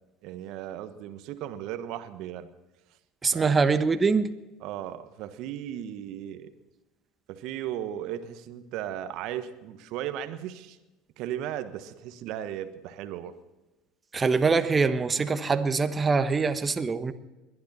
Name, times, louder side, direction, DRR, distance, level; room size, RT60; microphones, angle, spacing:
voice 1, 0.2-2.5 3.3-3.6 4.6-6.5 7.3-10.8 11.2-13.3, right 11 dB, 60° right, 1.3 m, -36 dB
voice 2, 3.2-4.3 14.1-17.1, right 4 dB, 25° right, 1.2 m, -24 dB
22.0 x 11.5 x 4.2 m
hypercardioid pair, 75°, 0 cm